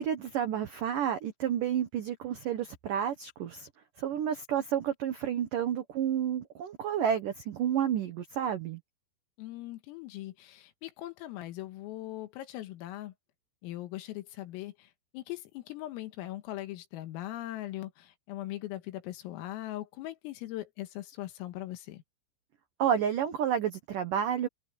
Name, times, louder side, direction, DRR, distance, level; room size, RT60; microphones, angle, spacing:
voice 1, 0.0-3.7 4.0-8.8 22.8-24.5, right 9 dB, 90° right, 1.8 m, -30 dB
voice 2, 9.4-13.1 13.6-14.9 15.1-22.0, left 15 dB, 90° left, 4.3 m, -40 dB
omnidirectional pair, 5.9 m